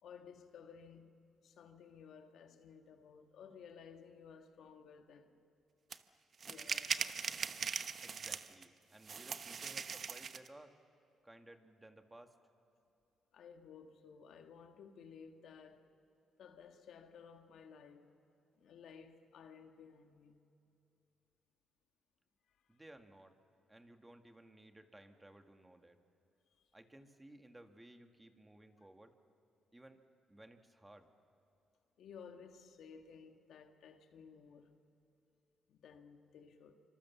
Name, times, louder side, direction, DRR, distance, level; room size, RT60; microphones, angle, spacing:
voice 1, 0.0-1.1 1.4-5.3 6.4-7.2 13.3-15.9 16.4-18.1 18.6-20.4 32.0-34.7 35.7-36.8, left 6 dB, 70° left, 1.7 m, -56 dB
sound 1, 5.9-6.0 6.4-8.6 9.1-10.5, right 6 dB, 50° right, 1.0 m, -40 dB
voice 2, 8.0-10.7 11.2-12.3 22.7-23.3 23.7-26.0 26.7-29.1 29.7-30.0 30.3-31.1, right 1 dB, 10° right, 1.8 m, -58 dB
26.0 x 25.5 x 7.2 m
cardioid pair, 90°, 0 cm